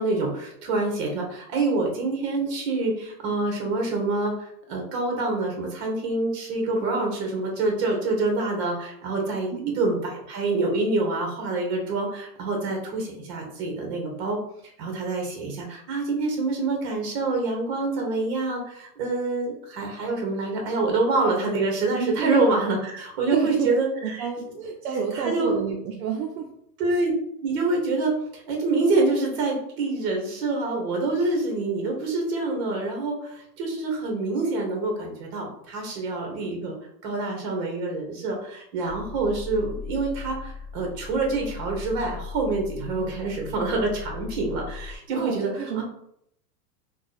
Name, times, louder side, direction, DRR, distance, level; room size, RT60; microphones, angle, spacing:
voice 1, 0.0-14.4 14.8-24.3 25.1-25.6 26.8-27.1 27.4-36.8 37.0-45.8, right 3 dB, 40° right, 1 dB, 1.2 m, -26 dB
voice 2, 9.5-9.8 21.9-22.4 23.3-23.7 23.9-26.5 45.1-45.8, right 7 dB, 65° right, 0 dB, 0.7 m, -29 dB
sound 1, 38.8-45.0, left 5 dB, 35° left, 0.6 m, -38 dB
2.8 x 2.4 x 3.9 m, 0.73 s
supercardioid pair, 155°, 48 cm